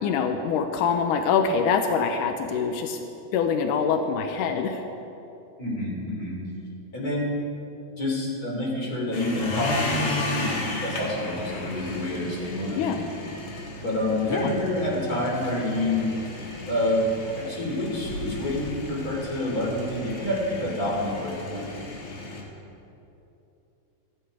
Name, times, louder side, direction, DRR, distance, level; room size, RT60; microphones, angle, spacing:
voice 1, 0.0-3.0 3.3-4.8 12.8-13.0 14.3-14.5, left 6 dB, 85° left, 6 dB, 1.8 m, -24 dB
voice 2, 5.6-6.4 6.9-7.3 8.0-13.1 13.8-16.1 16.7-17.1 17.3-21.9, left 1 dB, 25° left, -3 dB, 3.2 m, -28 dB
sound 1, 9.1-22.4, left 1 dB, 45° left, 2.3 m, -34 dB
16.5 x 13.5 x 4.8 m, 2.9 s
omnidirectional pair, 4.6 m